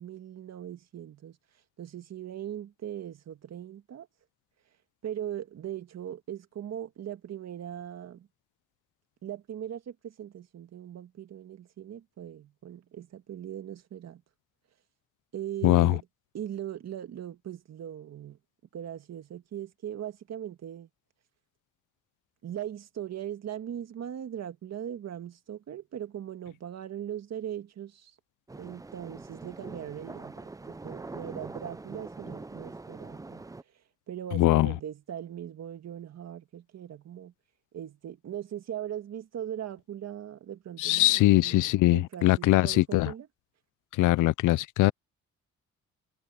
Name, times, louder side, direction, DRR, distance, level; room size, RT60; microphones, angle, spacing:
voice 1, 0.0-1.4 1.8-4.1 5.0-8.3 9.2-14.2 15.3-16.0 16.3-18.4 18.7-20.9 22.4-28.2 28.6-33.5 34.1-37.3 37.7-41.6 41.9-43.3, right 10 dB, 60° right, 1.9 m, -39 dB
voice 2, 15.6-16.0 34.3-34.8 40.8-43.1 43.9-44.9, left 17 dB, 85° left, 0.6 m, -22 dB
sound 1, 28.5-33.6, right 3 dB, 10° right, 0.5 m, -43 dB
cardioid pair, 90°, 30 cm